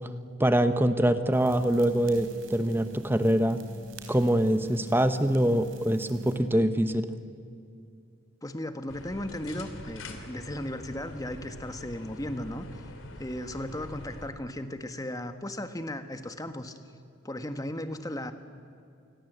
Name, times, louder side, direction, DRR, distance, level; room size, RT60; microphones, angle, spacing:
voice 1, 0.4-3.6 4.1-7.1, right 1 dB, 10° right, 10 dB, 0.9 m, -24 dB
sound 1, 1.3-6.4, right 2 dB, 75° right, 4.1 m, -47 dB
voice 2, 8.4-12.8 13.2-16.7 17.2-18.3, left 1 dB, 20° left, 9 dB, 1.4 m, -36 dB
sound 2, 8.9-14.3, left 1 dB, 75° left, 2.9 m, -44 dB
28.0 x 21.0 x 8.0 m, 2.5 s
head